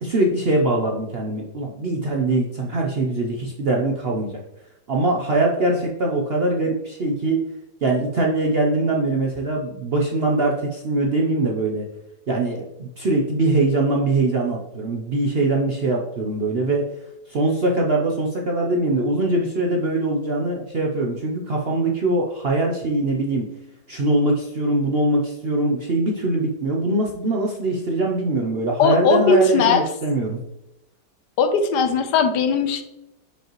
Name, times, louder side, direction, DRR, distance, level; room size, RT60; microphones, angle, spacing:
voice 1, 0.0-4.4 4.9-7.4 7.8-11.9 12.3-16.9 17.3-23.5 23.9-30.4, right 2 dB, 60° right, -1 dB, 0.6 m, -22 dB
voice 2, 28.8-29.9 31.4-32.8, left 5 dB, 75° left, 8 dB, 1.3 m, -18 dB
6.5 x 5.3 x 3.0 m, 0.89 s
omnidirectional pair, 1.8 m